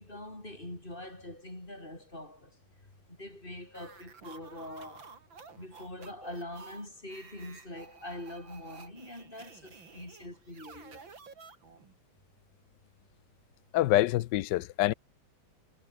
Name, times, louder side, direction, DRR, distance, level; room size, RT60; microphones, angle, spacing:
voice 1, 0.0-2.6 3.1-5.2 5.6-11.1, left 1 dB, 25° left, 5.2 m, -44 dB
sound 1, 3.7-12.0, right 5 dB, 80° right, 4.0 m, -52 dB
voice 2, 13.7-14.9, left 15 dB, 75° left, 1.2 m, -26 dB
omnidirectional pair, 2.1 m